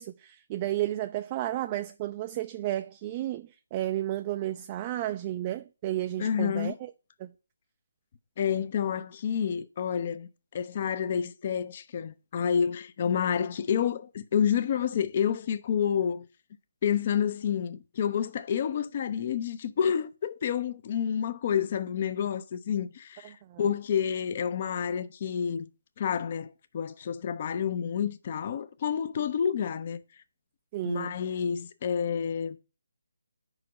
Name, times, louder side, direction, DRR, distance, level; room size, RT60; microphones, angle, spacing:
voice 1, 0.0-6.9 7.2-7.3 23.2-23.6 30.7-31.1, right 14 dB, 25° right, 0.3 m, -32 dB
voice 2, 6.2-6.8 8.4-16.3 16.8-25.7 26.0-30.0 30.8-32.6, left 8 dB, 40° left, 0.5 m, -29 dB
5.0 x 4.9 x 6.2 m
figure-of-eight pair, 150°, 0 cm